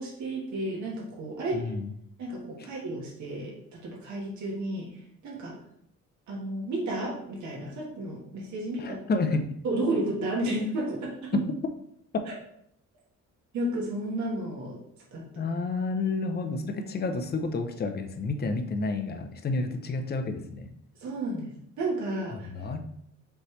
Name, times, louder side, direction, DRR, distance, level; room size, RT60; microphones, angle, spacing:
voice 1, 0.0-1.7 2.2-4.9 5.2-5.6 6.3-9.0 9.6-11.4 13.5-14.8 15.1-15.5 21.0-22.5, right 1 dB, 70° right, -3 dB, 1.4 m, -32 dB
voice 2, 1.5-1.9 8.8-9.5 11.3-11.5 15.4-20.7 22.3-22.8, left 3 dB, 35° left, 6 dB, 0.6 m, -30 dB
5.2 x 3.2 x 3.2 m, 0.73 s
cardioid pair, 90°, 30 cm